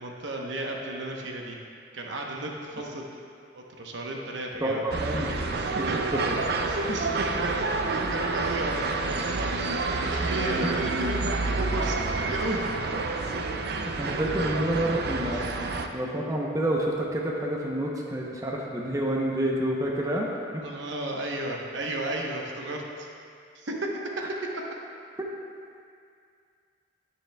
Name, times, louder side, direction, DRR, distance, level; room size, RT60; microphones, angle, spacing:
voice 1, 0.0-1.6 1.9-3.1 3.5-4.8 5.5-6.0 6.7-12.7 15.3-15.8 20.6-23.1 23.5-23.9, right 1 dB, 75° right, 0 dB, 0.9 m, -34 dB
voice 2, 4.6-5.7 6.1-6.3 10.6-10.8 12.2-12.3 13.8-15.5 15.9-20.6 25.2-25.3, right 1 dB, 15° right, -2 dB, 0.7 m, -29 dB
sound 1, 4.9-15.9, right 3 dB, 55° right, 0.4 m, -29 dB
10.0 x 9.0 x 2.3 m, 2.3 s
head